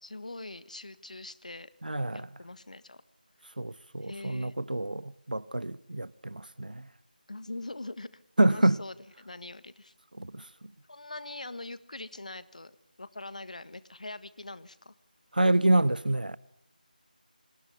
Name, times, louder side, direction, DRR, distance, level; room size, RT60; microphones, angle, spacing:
voice 1, 0.0-1.7 2.1-3.0 4.0-4.5 7.3-9.9 10.9-14.9, left 2 dB, 50° left, 1.5 m, -43 dB
voice 2, 1.8-2.3 3.6-6.9 8.4-8.8 10.2-10.5 15.3-16.4, right 1 dB, 65° right, 1.1 m, -27 dB
29.5 x 26.5 x 7.1 m
figure-of-eight pair, 165°, 5 cm